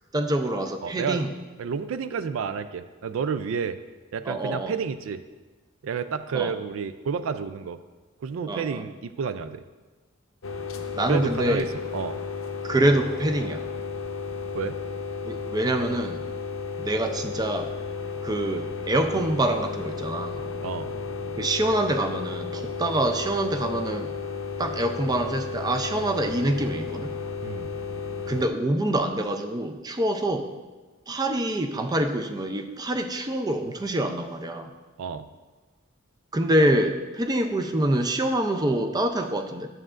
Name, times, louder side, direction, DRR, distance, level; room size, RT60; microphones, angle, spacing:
voice 1, 0.1-1.3 4.3-4.7 6.3-6.5 8.5-8.8 10.9-11.7 12.6-13.6 15.2-16.2 16.8-17.7 18.2-20.4 21.4-24.1 24.6-27.1 28.3-30.5 31.1-34.7 36.3-39.7, right 1 dB, 20° right, 6 dB, 0.5 m, -25 dB
voice 2, 0.8-1.2 1.6-3.8 4.1-5.2 5.8-7.8 8.2-9.6 11.1-11.7 11.9-12.2 14.5-14.8 20.6-20.9 27.4-27.7 35.0-35.3, right 6 dB, 75° right, 12 dB, 0.4 m, -30 dB
sound 1, 10.4-28.5, left 5 dB, 85° left, 0.6 m, -33 dB
11.0 x 7.7 x 2.5 m, 1.3 s
head